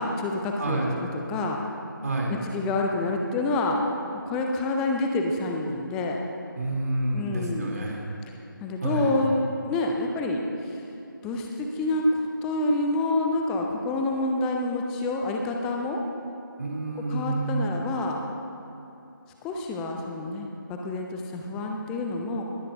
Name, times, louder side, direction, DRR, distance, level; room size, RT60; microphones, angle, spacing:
voice 1, 0.0-1.6 2.3-3.8 4.3-6.2 7.1-7.8 8.6-10.4 11.2-16.0 17.1-18.2 19.4-22.4, left 2 dB, 5° left, 1 dB, 0.4 m, -28 dB
voice 2, 0.6-1.0 2.0-2.4 6.6-8.1 8.8-9.2 16.6-17.7, right 2 dB, 50° right, -1 dB, 3.0 m, -28 dB
21.5 x 16.0 x 2.6 m, 2.9 s
figure-of-eight pair, 155°, 11 cm